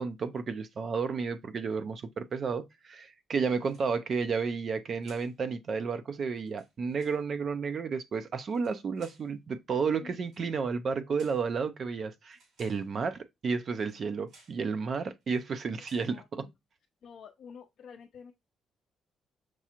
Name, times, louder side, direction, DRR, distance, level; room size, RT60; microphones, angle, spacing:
voice 1, 0.0-16.5, right 5 dB, 50° right, 0.4 m, -32 dB
sound 1, 3.6-4.2 5.0-5.4 6.3-7.2 8.4-9.3 10.2-10.5 11.1-11.5 12.3-12.9 13.8-14.0 14.3-14.6 15.2-15.5 15.8-16.2, right 2 dB, 75° right, 3.2 m, -60 dB
voice 2, 16.1-16.5 17.0-18.3, left 6 dB, 65° left, 0.4 m, -49 dB
6.0 x 2.3 x 2.8 m
cardioid pair, 90°, 0 cm